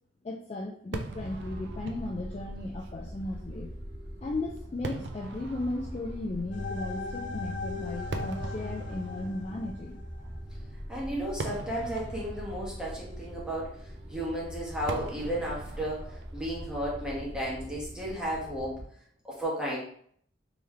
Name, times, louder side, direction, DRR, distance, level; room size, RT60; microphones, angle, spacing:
voice 1, 0.2-3.8 4.2-10.0, left 2 dB, 35° left, 1 dB, 0.3 m, -36 dB
Fireworks, 0.9-18.3, right 3 dB, 65° right, 0.4 m, -44 dB
sound 1, 1.0-18.8, equal, 35° right, 1.5 m, -42 dB
sound 2, 6.5-10.5, left 3 dB, 80° left, 0.6 m, -38 dB
voice 2, 10.9-18.8 19.2-19.8, right 1 dB, 5° right, -6 dB, 1.1 m, -34 dB
3.5 x 3.1 x 3.1 m, 0.63 s
head